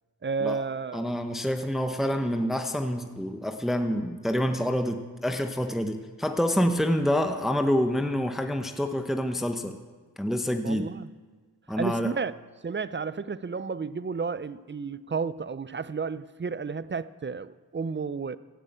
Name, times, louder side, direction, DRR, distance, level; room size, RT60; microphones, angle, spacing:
voice 1, 0.2-1.1 10.6-11.1 11.8-12.3 12.6-18.4, right 5 dB, 30° right, 0.5 m, -32 dB
voice 2, 0.9-9.8 10.2-10.9 11.7-12.1, equal, ahead, 0.9 m, -27 dB
16.0 x 6.5 x 8.1 m
cardioid pair, 45°, 41 cm